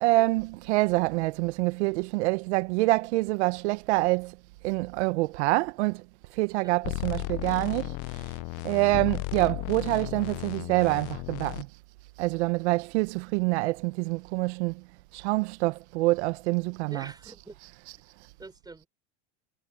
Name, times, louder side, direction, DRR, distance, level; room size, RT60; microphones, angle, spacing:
voice 1, 0.0-4.4 4.6-6.0 6.3-8.4 8.6-11.7 12.2-14.8 15.1-17.3 17.6-18.0, right 22 dB, 75° right, 1.2 m, -26 dB
sound 1, 6.8-11.6, left 27 dB, 55° left, 0.7 m, -34 dB
voice 2, 16.9-17.6 18.4-18.9, right 3 dB, 10° right, 3.8 m, -45 dB
supercardioid pair, 100°, 34 cm